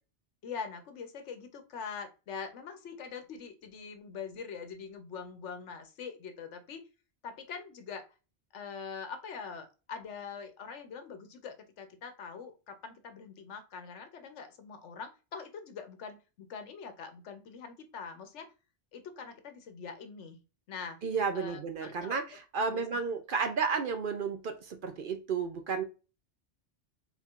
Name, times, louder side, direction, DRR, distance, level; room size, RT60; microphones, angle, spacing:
voice 1, 0.4-6.8 7.2-8.1 8.5-18.5 18.9-20.4 20.7-21.0 21.3-22.2 22.6-22.8, left 6 dB, 85° left, 7 dB, 1.1 m, -43 dB
voice 2, 21.0-25.8, right 5 dB, 55° right, 7 dB, 0.7 m, -32 dB
4.4 x 3.6 x 2.4 m, 0.31 s
omnidirectional pair, 1.2 m